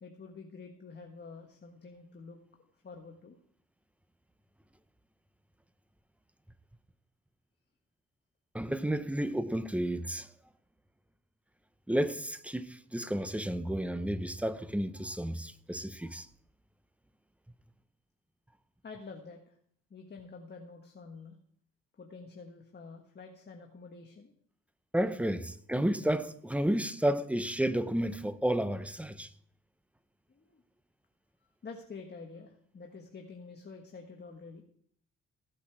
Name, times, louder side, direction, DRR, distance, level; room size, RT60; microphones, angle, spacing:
voice 1, 0.0-2.4 2.8-3.4 18.8-19.5 19.9-21.4 21.9-24.3 30.3-30.6 31.6-34.6, left 4 dB, 35° left, 1.5 m, -48 dB
voice 2, 8.5-10.3 11.9-16.3 24.9-29.3, right 1 dB, 5° right, 0.8 m, -31 dB
16.0 x 8.5 x 4.7 m
cardioid pair, 90°, 30 cm